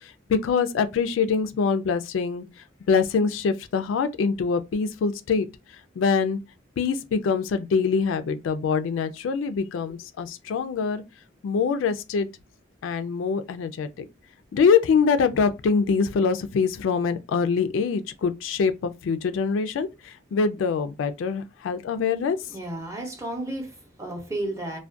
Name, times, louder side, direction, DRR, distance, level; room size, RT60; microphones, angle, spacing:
voice 1, 0.0-2.4 2.9-5.5 6.0-6.4 6.8-11.0 11.4-12.3 12.8-14.0 14.5-22.4, left 5 dB, 75° left, 0.3 m, -24 dB
voice 2, 22.5-24.8, right 1 dB, 15° right, 0.6 m, -33 dB
2.3 x 2.1 x 2.5 m
head